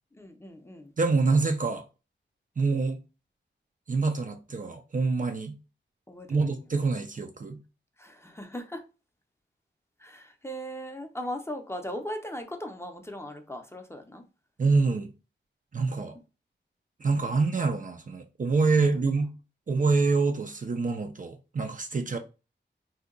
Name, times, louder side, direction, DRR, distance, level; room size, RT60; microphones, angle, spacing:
voice 1, 0.1-0.9 6.1-6.6 8.0-8.8 10.0-14.2 17.1-17.2 18.8-19.1 22.1-22.2, equal, 15° left, 0.6 m, -39 dB
voice 2, 1.0-1.8 2.6-3.0 3.9-5.5 6.3-7.6 14.6-15.1 15.7-16.2 17.0-19.3 19.7-22.2, right 4 dB, 45° right, 0.4 m, -26 dB
2.7 x 2.2 x 3.7 m
wide cardioid pair, 85°, 20 cm